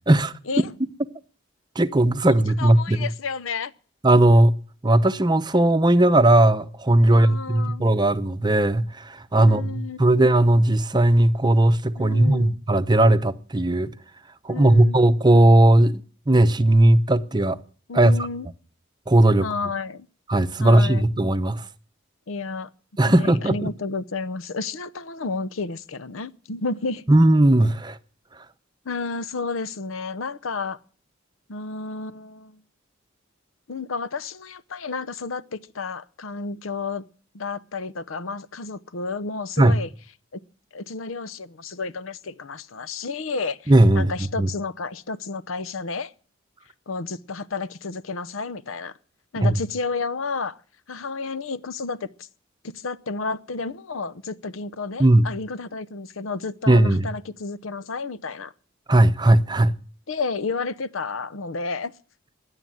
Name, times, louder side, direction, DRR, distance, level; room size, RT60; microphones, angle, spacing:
voice 1, 1.8-3.1 4.0-4.5 4.8-13.9 14.4-16.0 16.3-17.6 17.9-18.2 19.1-19.5 20.3-21.6 23.0-23.7 27.1-28.0 39.6-39.8 43.7-44.1 44.4-44.5 49.4-49.5 55.0-55.3 56.7-57.0 58.9-59.7, right 1 dB, 20° right, 0.8 m, -17 dB
voice 2, 2.6-3.7 7.1-7.8 9.4-10.1 12.0-12.5 14.5-15.0 17.9-18.5 19.4-20.1 20.6-21.1 22.3-22.7 23.0-27.0 28.8-30.8 31.5-32.6 33.7-37.0 37.3-39.9 40.3-40.4 40.7-46.1 46.9-48.9 49.3-50.6 50.9-52.3 52.6-58.5 60.1-61.9, left 4 dB, 80° left, 0.8 m, -31 dB
16.5 x 10.5 x 7.7 m
head